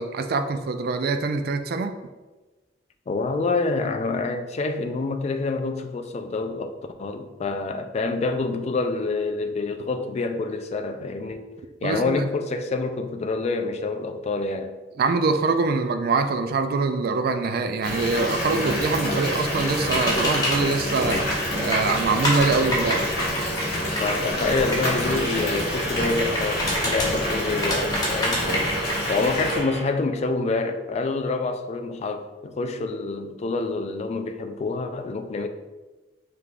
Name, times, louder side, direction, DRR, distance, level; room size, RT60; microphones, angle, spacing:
voice 1, 0.0-2.0 11.8-12.2 15.0-21.3 21.6-23.1, right 4 dB, 55° right, 8 dB, 0.3 m, -24 dB
voice 2, 3.1-14.7 24.0-28.5 29.1-35.5, left 3 dB, 35° left, 6 dB, 0.3 m, -27 dB
Water tap faucet / Bathtub (filling or washing) / Fill (with liquid), 17.8-29.6, equal, 55° left, 1.4 m, -27 dB
sound 1, 19.9-20.6 21.1-21.4 21.7-25.0 26.0-27.1 27.6-29.5, equal, 20° left, 1.0 m, -27 dB
sound 2, 24.8-29.8, right 1 dB, 80° right, 1.1 m, -36 dB
5.0 x 3.3 x 2.4 m, 1.2 s
head